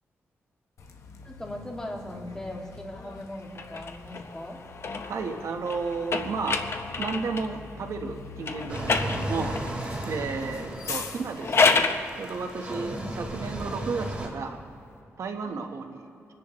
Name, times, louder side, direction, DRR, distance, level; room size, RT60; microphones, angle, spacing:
Bus, 0.8-14.1, left 5 dB, 75° left, 1.1 m, -44 dB
voice 1, 1.2-4.6 10.4-10.8 12.7-13.0 15.4-15.6, left 1 dB, 10° left, -1 dB, 2.3 m, -40 dB
sound 1, 3.5-7.6 8.4-9.8 11.2-12.0, left 4 dB, 55° left, 0.9 m, -28 dB
voice 2, 5.1-6.6 7.0-9.6 10.0-11.9 12.2-14.6 15.2-16.1, right 4 dB, 75° right, 4 dB, 1.3 m, -33 dB
sound 2, 8.7-14.3, right 1 dB, 25° right, 3.2 m, -35 dB
25.5 x 10.5 x 3.2 m, 2.7 s
cardioid pair, 85°, 5 cm